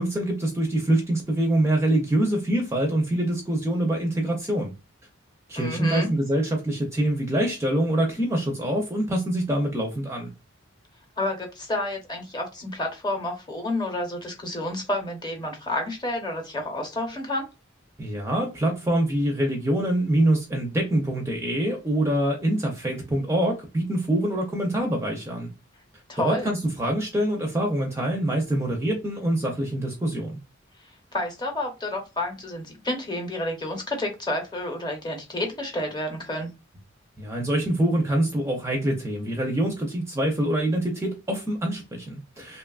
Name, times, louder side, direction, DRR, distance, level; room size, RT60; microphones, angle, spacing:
voice 1, 0.0-4.7 5.5-10.3 18.0-25.5 26.2-30.4 37.2-42.6, right 1 dB, 15° right, 0.5 m, -25 dB
voice 2, 5.5-6.1 11.2-17.5 26.1-26.5 31.1-36.5, left 1 dB, 20° left, 0.7 m, -30 dB
2.9 x 2.2 x 2.3 m
head